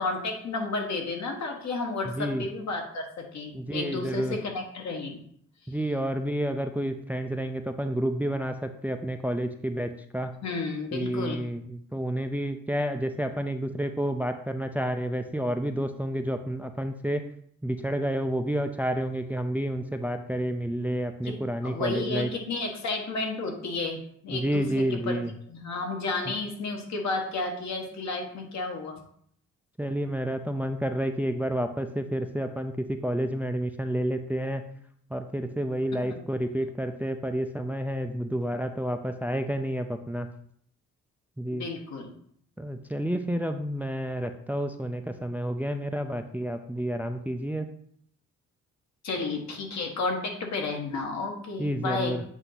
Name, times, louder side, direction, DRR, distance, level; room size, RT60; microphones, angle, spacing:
voice 1, 0.0-5.2 10.4-11.4 21.2-21.4 21.6-25.2 25.5-29.0 35.9-36.2 41.5-42.1 49.0-52.2, left 3 dB, 65° left, 3 dB, 1.4 m, -32 dB
voice 2, 3.5-4.4 5.7-10.3 10.9-17.3 17.6-22.3 24.3-25.3 26.3-26.4 29.8-34.6 35.1-40.3 41.4-41.7 42.6-47.7 51.6-52.2, equal, 5° right, 7 dB, 0.4 m, -30 dB
8.0 x 2.7 x 5.8 m, 0.64 s
cardioid pair, 90°, 30 cm